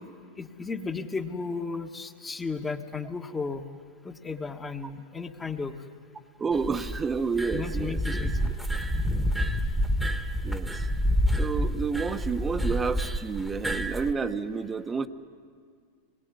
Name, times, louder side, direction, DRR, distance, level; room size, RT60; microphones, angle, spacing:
voice 1, 0.4-3.6 4.0-5.8 7.5-8.4, left 4 dB, 15° left, 4 dB, 1.4 m, -34 dB
voice 2, 6.4-8.5 10.4-10.9 11.4-15.1, right 5 dB, 15° right, 9 dB, 1.1 m, -30 dB
sound 1, 6.5-14.1, equal, ahead, 1.4 m, -28 dB
25.5 x 21.5 x 9.7 m, 2.1 s
hypercardioid pair, 125°, 0 cm